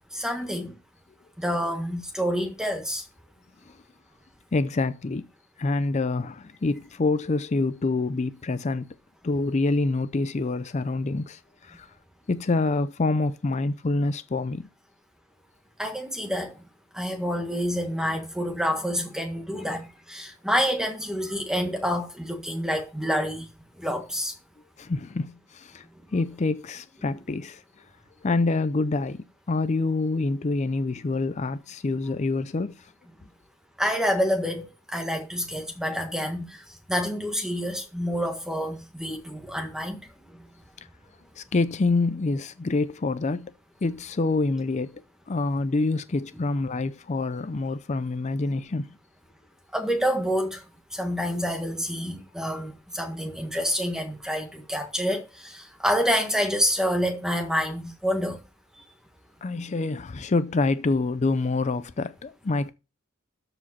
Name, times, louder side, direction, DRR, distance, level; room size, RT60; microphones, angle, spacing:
voice 1, 0.1-0.7 1.4-3.0 15.8-16.6 16.9-23.5 23.8-24.3 33.8-40.0 49.7-50.6 50.9-58.4, equal, 5° right, 1.6 m, -28 dB
voice 2, 4.5-5.3 5.6-8.9 9.2-11.9 12.3-14.6 24.8-25.9 26.1-27.6 28.2-32.9 41.4-43.5 43.8-45.0 45.3-48.9 59.4-62.7, left 3 dB, 30° left, 0.4 m, -26 dB
13.0 x 5.0 x 4.2 m
head